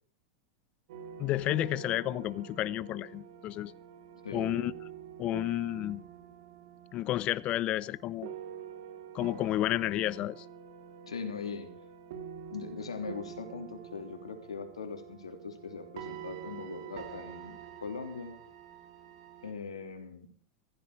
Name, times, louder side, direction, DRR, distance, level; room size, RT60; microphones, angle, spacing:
sound 1, 0.9-19.5, right 8 dB, 65° right, 2.7 m, -46 dB
voice 1, 1.2-3.7 4.3-4.7 5.2-6.0 6.9-8.3 9.1-10.4, left 14 dB, 40° left, 20 dB, 0.8 m, -31 dB
voice 2, 11.0-11.7 12.5-18.3 19.4-20.3, left 5 dB, 85° left, 5 dB, 3.1 m, -40 dB
15.5 x 15.0 x 4.9 m, 0.42 s
hypercardioid pair, 100°, 3 cm